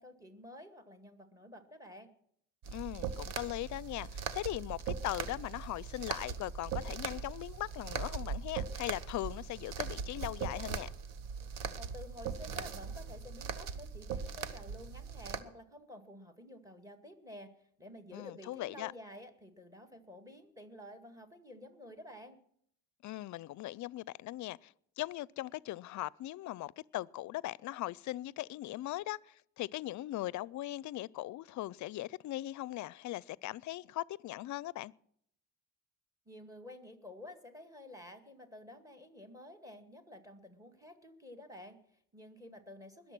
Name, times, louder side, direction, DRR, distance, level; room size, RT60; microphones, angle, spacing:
voice 1, 0.0-2.1 11.8-17.5 17.8-22.4 36.3-43.1, left 1 dB, 10° right, 2.1 m, -51 dB
sound 1, 2.6-15.4, right 6 dB, 65° right, 1.2 m, -40 dB
voice 2, 2.7-10.9 18.1-18.9 23.0-34.9, left 16 dB, 55° left, 0.5 m, -39 dB
20.5 x 7.3 x 6.1 m
cardioid pair, 95°, 36 cm